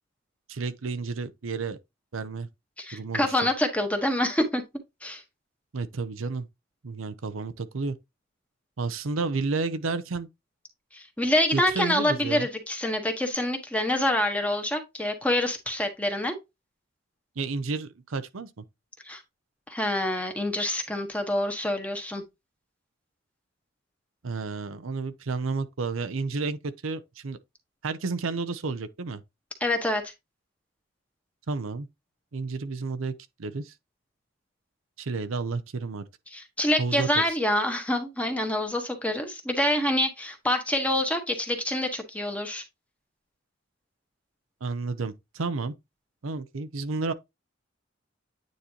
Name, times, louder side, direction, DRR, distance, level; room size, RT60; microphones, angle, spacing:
voice 1, 0.5-1.8 2.1-2.5 2.9-3.3 5.7-6.5 6.8-7.9 8.8-10.3 11.5-12.5 17.4-18.6 24.2-27.4 27.8-29.2 31.5-31.9 32.3-33.1 33.4-33.7 35.0-36.0 36.8-37.2 44.6-45.7 46.2-47.1, right 4 dB, 85° right, 0.7 m, -31 dB
voice 2, 2.8-4.6 5.0-5.2 10.9-16.4 19.0-19.2 19.7-22.2 29.6-30.1 36.3-42.6, left 1 dB, 5° left, 1.3 m, -26 dB
9.3 x 4.1 x 2.9 m
head